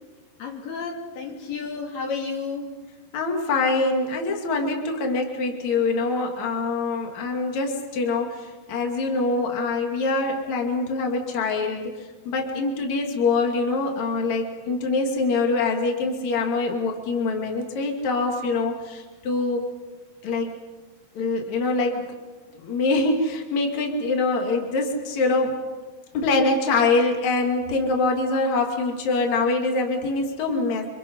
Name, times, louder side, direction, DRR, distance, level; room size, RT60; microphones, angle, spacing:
voice 1, 0.4-2.8, left 4 dB, 70° left, 1 dB, 4.4 m, -32 dB
voice 2, 3.1-19.7 20.2-20.5 21.1-22.1 22.5-25.6 26.1-30.9, left 3 dB, 50° left, 1 dB, 3.7 m, -24 dB
29.5 x 26.0 x 5.6 m, 1.3 s
omnidirectional pair, 4.7 m